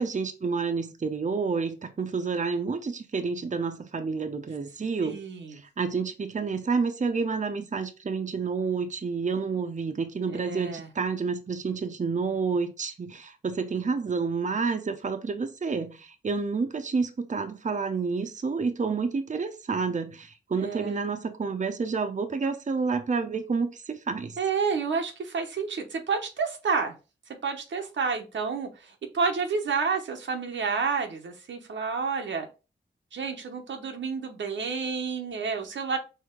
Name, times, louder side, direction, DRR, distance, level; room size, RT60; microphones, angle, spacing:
voice 1, 0.0-5.2 5.5-24.4, right 4 dB, 40° right, 0.6 m, -29 dB
voice 2, 5.0-5.6 10.3-10.9 20.6-21.0 24.4-26.9 27.4-32.5 33.1-36.0, right 5 dB, 90° right, 0.9 m, -30 dB
4.6 x 2.9 x 3.6 m
cardioid pair, 60°, 19 cm